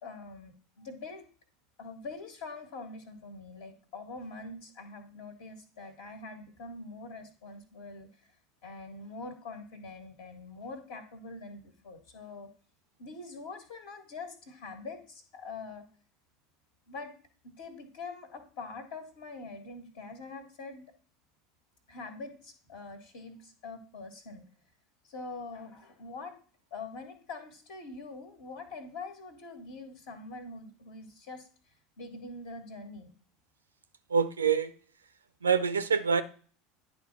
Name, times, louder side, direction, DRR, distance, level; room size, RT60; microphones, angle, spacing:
voice 1, 0.0-1.3 1.8-8.3 8.6-12.5 13.0-15.8 16.9-17.1 17.4-20.8 21.9-24.4 25.0-26.4 26.7-31.5 32.0-33.1, left 3 dB, 60° left, 1.7 m, -44 dB
voice 2, 34.1-34.7 35.4-36.2, right 6 dB, 75° right, 0.5 m, -25 dB
10.5 x 3.5 x 5.9 m
figure-of-eight pair, 75°, 0 cm